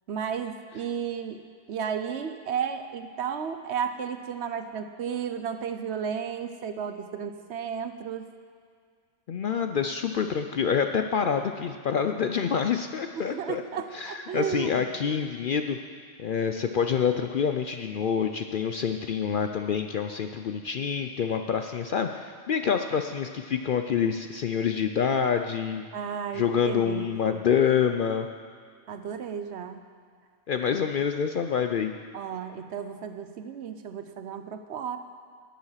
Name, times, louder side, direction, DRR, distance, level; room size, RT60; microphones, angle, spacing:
voice 1, 0.1-1.4 1.7-8.3 13.3-14.8 25.9-27.4 28.9-29.8 32.1-35.0, right 7 dB, 65° right, 8 dB, 1.0 m, -33 dB
voice 2, 9.3-13.6 13.9-15.8 16.2-25.9 26.3-28.3 30.5-31.9, left 7 dB, 60° left, 6 dB, 0.6 m, -27 dB
16.0 x 7.2 x 5.7 m, 2.1 s
omnidirectional pair, 1.3 m